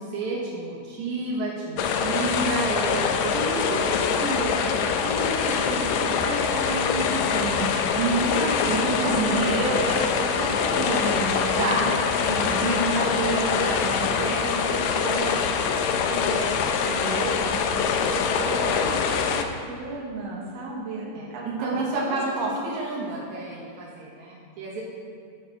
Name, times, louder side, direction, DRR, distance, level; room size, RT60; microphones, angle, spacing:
voice 1, 0.0-3.9 5.5-6.1 7.9-9.4 11.6-11.9 14.2-14.7 17.7-18.2 21.1-24.8, right 3 dB, 80° right, -5 dB, 2.7 m, -30 dB
sound 1, 1.8-19.4, left 6 dB, 80° left, 1.9 m, -24 dB
voice 2, 3.3-15.4 15.9-22.5, right 2 dB, 65° right, -3 dB, 2.3 m, -32 dB
9.4 x 6.2 x 5.8 m, 2.2 s
omnidirectional pair, 3.3 m